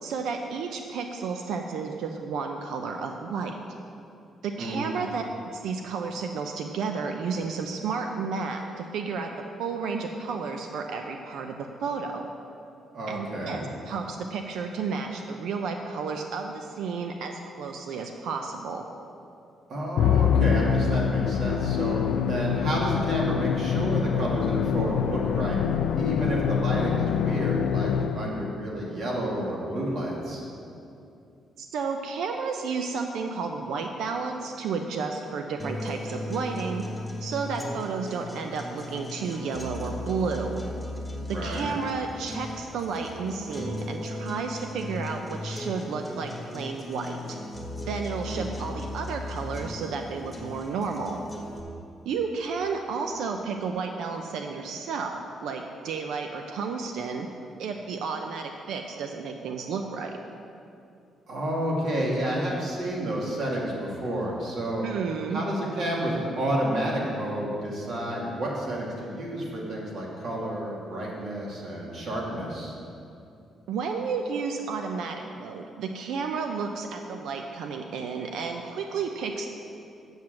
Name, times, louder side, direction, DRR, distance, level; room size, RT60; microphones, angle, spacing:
voice 1, 0.0-3.6 4.4-5.2 5.5-9.3 9.6-12.3 13.1-18.8 31.6-36.8 37.2-40.6 41.3-47.4 47.9-51.2 52.0-57.3 57.6-60.2 64.8-65.4 73.7-79.5, right 5 dB, 80° right, 4 dB, 0.6 m, -32 dB
voice 2, 4.6-5.0 12.9-13.6 19.7-25.6 26.0-30.4 41.3-41.7 48.3-48.6 61.3-64.8 65.3-72.7, right 1 dB, 55° right, -3 dB, 2.3 m, -30 dB
Musical instrument, 20.0-28.5, left 7 dB, 75° left, 0.3 m, -25 dB
sound 1, 35.6-51.6, left 1 dB, ahead, 1.7 m, -37 dB
7.8 x 7.2 x 7.6 m, 2.6 s
cardioid pair, 150°, 0 cm